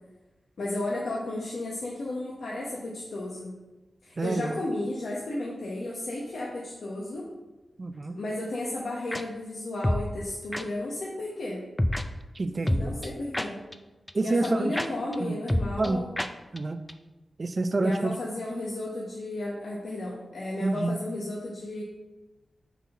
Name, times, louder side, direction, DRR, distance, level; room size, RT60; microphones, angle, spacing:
voice 1, 0.6-3.5 4.0-7.3 8.1-11.6 12.7-13.6 14.2-16.1 17.8-21.8, left 1 dB, 80° left, -5 dB, 1.1 m, -33 dB
voice 2, 4.2-4.5 7.8-8.1 12.3-12.9 14.1-14.8 15.2-15.3 15.8-16.0 16.5-16.8 17.4-18.1 20.6-21.0, right 2 dB, 45° right, 9 dB, 0.5 m, -27 dB
sound 1, 9.1-9.2 9.8-10.1 10.5-10.6 11.8-12.0 12.7-13.7 14.1-14.2 14.4-14.5 14.8-14.9 15.1-15.2 15.5-15.9 16.2-16.3 16.6-16.7 16.9-17.0, left 1 dB, 15° left, 0.4 m, -27 dB
5.6 x 4.2 x 6.0 m, 1.1 s
wide cardioid pair, 85°, 0 cm